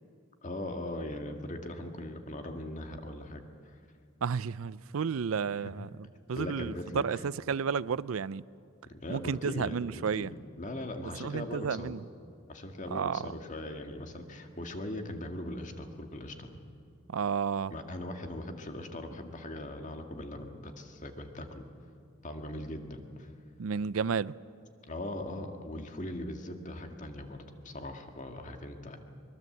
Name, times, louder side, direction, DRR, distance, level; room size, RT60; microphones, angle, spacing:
voice 1, 0.4-3.4 5.6-5.7 6.4-7.2 8.9-11.9 12.5-16.5 17.7-21.6 22.2-23.3 24.9-29.0, left 1 dB, 40° left, 2.0 m, -40 dB
voice 2, 4.2-8.4 9.1-10.3 11.2-12.0 12.9-13.3 17.1-17.7 23.6-24.3, right 6 dB, 90° right, 0.5 m, -32 dB
23.5 x 22.0 x 7.9 m
head